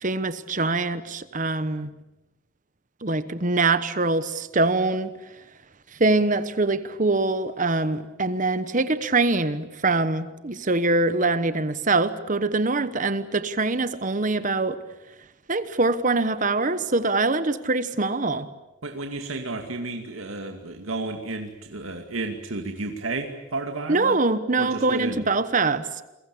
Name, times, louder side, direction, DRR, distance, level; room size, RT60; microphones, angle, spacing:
voice 1, 0.0-1.9 3.0-5.2 6.0-14.8 15.5-18.5 23.9-26.0, right 3 dB, 40° right, 13 dB, 1.1 m, -23 dB
voice 2, 18.8-24.2 24.6-25.2, right 2 dB, 90° right, 4 dB, 2.5 m, -32 dB
29.0 x 22.5 x 8.6 m, 0.98 s
head